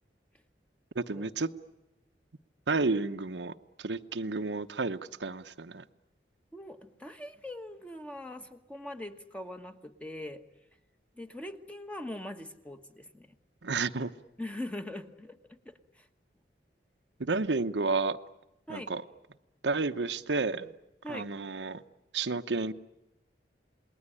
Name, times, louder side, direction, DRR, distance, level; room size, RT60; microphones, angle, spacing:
voice 1, 0.9-1.5 2.7-5.8 13.6-14.1 17.2-18.2 18.7-19.0 19.6-20.7 21.1-21.8 22.1-22.7, right 3 dB, 85° right, 9 dB, 0.9 m, -31 dB
voice 2, 6.5-10.4 11.1-13.4 14.4-16.1 18.7-18.9 21.0-21.3, left 1 dB, 5° left, 7 dB, 1.2 m, -42 dB
28.0 x 20.5 x 10.0 m, 0.94 s
head